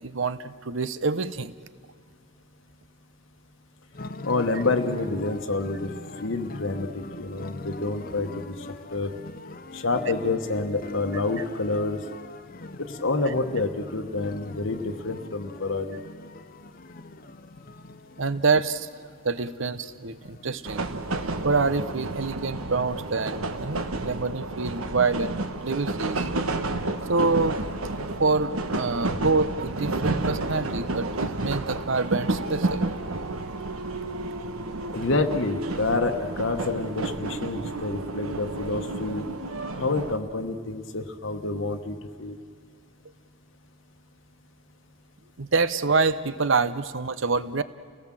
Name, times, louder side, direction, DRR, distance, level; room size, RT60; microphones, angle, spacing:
voice 1, 0.0-1.5 18.2-18.9 19.2-20.8 21.4-26.3 27.1-27.6 28.2-32.9 45.4-47.6, right 4 dB, 60° right, 14 dB, 0.8 m, -26 dB
sound 1, 3.9-22.3, left 2 dB, 40° left, 0.7 m, -42 dB
voice 2, 4.2-5.9 6.2-8.5 8.9-9.1 9.7-12.0 12.8-16.0 34.9-39.2 39.8-42.4, left 3 dB, 60° left, 5 dB, 1.1 m, -28 dB
sound 2, 20.6-40.2, right 2 dB, 80° right, 1.3 m, -31 dB
29.5 x 18.0 x 7.6 m, 2.2 s
head